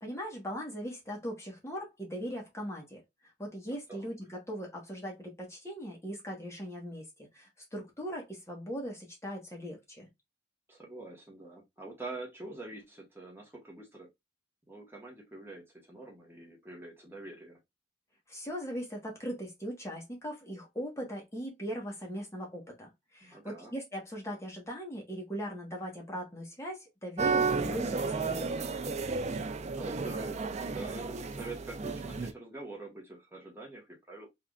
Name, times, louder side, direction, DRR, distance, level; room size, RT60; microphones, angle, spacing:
voice 1, 0.0-10.1 18.3-28.5, equal, 15° left, 1.3 m, -40 dB
voice 2, 10.7-14.1 14.7-17.6 23.2-23.7 29.7-34.3, right 2 dB, 15° right, 1.2 m, -45 dB
sound 1, 27.2-32.3, right 4 dB, 40° right, 0.4 m, -32 dB
3.6 x 3.4 x 2.3 m
head